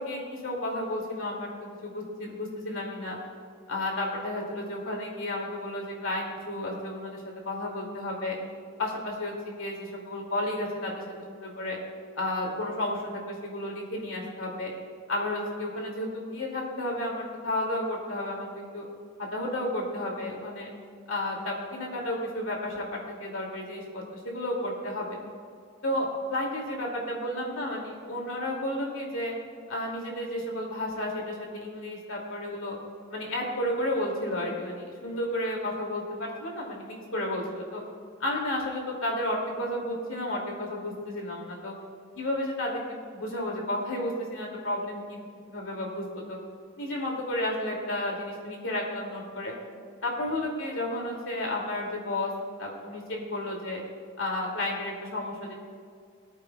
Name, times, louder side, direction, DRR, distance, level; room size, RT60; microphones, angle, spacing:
voice 1, 0.0-1.5 1.8-3.2 3.7-8.4 8.8-11.8 12.2-13.0 13.3-14.7 15.1-18.9 19.2-20.7 21.1-25.2 25.8-29.4 29.7-32.8 33.1-37.8 38.2-41.7 42.2-46.4 46.8-49.5 50.0-52.3 52.6-53.8 54.2-55.5, left 1 dB, 75° left, -1 dB, 2.4 m, -32 dB
18.5 x 13.5 x 2.3 m, 2.2 s
head